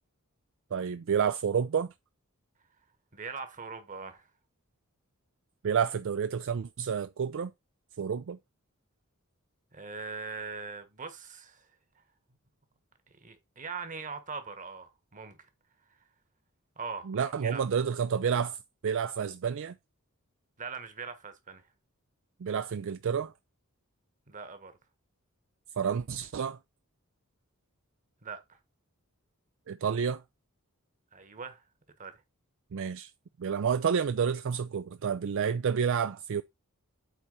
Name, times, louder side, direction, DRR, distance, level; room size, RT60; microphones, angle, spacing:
voice 1, 0.7-1.9 5.6-7.5 8.0-8.4 17.1-18.6 18.8-19.8 22.4-23.3 25.8-26.6 29.7-30.2 32.7-33.1 33.4-36.4, right 7 dB, 60° right, 0.4 m, -29 dB
voice 2, 3.1-4.3 9.7-11.7 13.2-15.4 16.8-17.6 20.6-21.6 24.3-24.7 28.2-28.6 31.1-31.6 32.0-32.1, right 4 dB, 35° right, 1.4 m, -41 dB
8.2 x 4.4 x 4.0 m
head